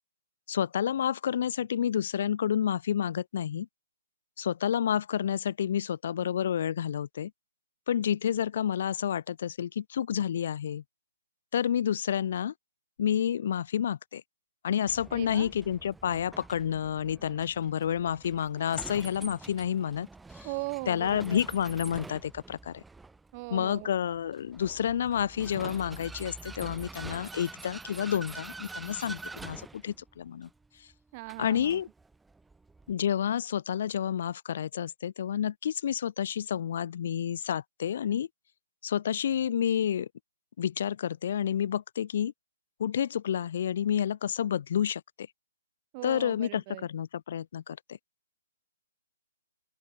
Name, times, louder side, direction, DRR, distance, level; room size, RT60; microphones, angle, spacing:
voice 1, 0.5-3.7 4.4-7.3 7.9-10.8 11.5-12.5 13.0-14.2 14.6-20.1 20.9-22.8 23.5-30.5 31.4-31.9 32.9-38.3 38.8-40.1 40.6-42.3 42.8-45.3 46.0-48.0, left 9 dB, 55° left, 0.5 m, -29 dB
Vehicle, 14.9-32.9, right 3 dB, 5° right, 0.9 m, -46 dB
voice 2, 15.1-15.5 20.4-21.4 23.3-24.0 31.1-31.8 45.9-46.9, right 28 dB, 30° right, 0.8 m, -39 dB
open air
hypercardioid pair, 145°, 0 cm